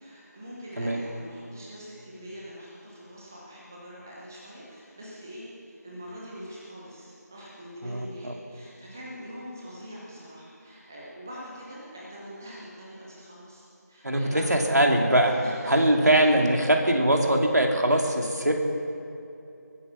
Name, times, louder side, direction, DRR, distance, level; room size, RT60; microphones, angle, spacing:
voice 1, 0.0-14.9 15.2-16.4, equal, 10° right, -6 dB, 1.0 m, -43 dB
voice 2, 7.8-8.3 14.0-15.3 15.7-18.5, right 1 dB, 65° right, 2 dB, 2.6 m, -22 dB
21.5 x 9.3 x 7.2 m, 2.7 s
figure-of-eight pair, 170°, 10 cm